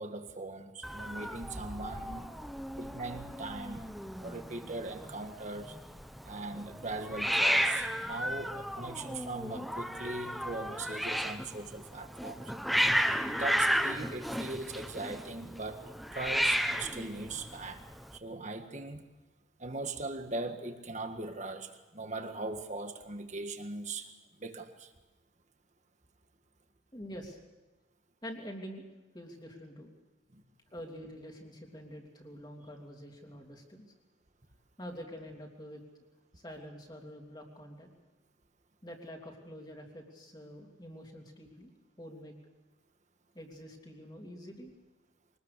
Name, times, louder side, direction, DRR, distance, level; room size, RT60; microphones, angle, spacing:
voice 1, 0.0-2.3 2.8-3.9 4.1-5.8 6.2-12.5 13.2-15.8 16.1-19.0 19.6-24.1 24.4-24.9 30.3-30.4, right 2 dB, 35° right, 6 dB, 1.7 m, -40 dB
Hiss, 0.8-18.2, equal, ahead, 0.8 m, -33 dB
voice 2, 26.9-27.4 28.2-28.8 29.1-29.9 30.7-33.9 34.8-36.0 36.3-37.9 38.8-41.7 42.0-42.3 43.3-44.7, equal, 20° left, 1 dB, 2.9 m, -46 dB
24.0 x 19.5 x 6.8 m, 1.1 s
head